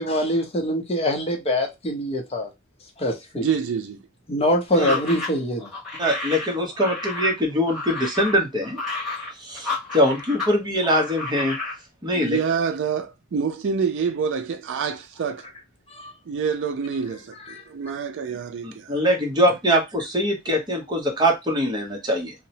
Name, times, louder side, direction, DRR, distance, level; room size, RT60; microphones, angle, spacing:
voice 1, 0.0-2.5 3.0-3.5 4.3-5.7 15.9-16.1 17.5-17.6, equal, 30° left, 0.6 m, -24 dB
voice 2, 3.4-4.0 12.1-15.5 16.3-19.0, right 6 dB, 60° right, 0.4 m, -27 dB
sound 1, 4.7-10.5 10.8-11.8, left 3 dB, ahead, 1.4 m, -31 dB
voice 3, 6.0-8.8 9.4-11.6 12.0-12.4 18.6-22.3, equal, 20° right, 0.8 m, -23 dB
2.8 x 2.0 x 2.7 m
head